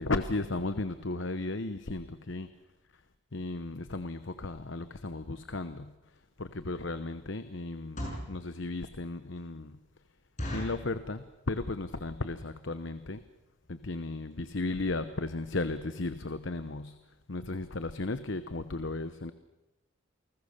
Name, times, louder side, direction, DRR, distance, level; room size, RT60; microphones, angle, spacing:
voice 1, 0.0-2.5 3.3-6.0 6.4-9.8 10.5-13.2 13.7-17.0 17.3-19.3, left 2 dB, 65° left, 11 dB, 0.9 m, -35 dB
sound 1, 6.2-6.3 6.8-7.0 7.7-8.4 8.9-9.0 9.3-9.4 9.8-9.9 10.4-10.9 11.5-11.8 12.0-12.1 12.4-12.6 13.2-13.3 13.5-13.7 14.0-14.1 14.3-14.4, equal, 35° left, 7.0 m, -38 dB
29.0 x 20.0 x 6.7 m, 1.0 s
head